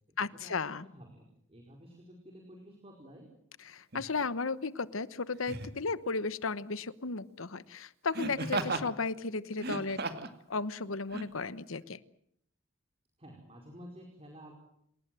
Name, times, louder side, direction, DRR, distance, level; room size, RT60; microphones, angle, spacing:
voice 1, 0.2-0.9 3.6-10.0 10.5-12.0, left 4 dB, 80° left, 16 dB, 1.1 m, -35 dB
voice 2, 0.8-3.3 13.2-14.5, equal, 30° right, 2 dB, 4.8 m, -51 dB
Laughter, 3.9-4.1 5.4-5.8 8.1-8.9 9.5-10.4 11.1-11.2, right 3 dB, 50° right, 2.3 m, -35 dB
28.0 x 18.5 x 7.8 m, 0.72 s
head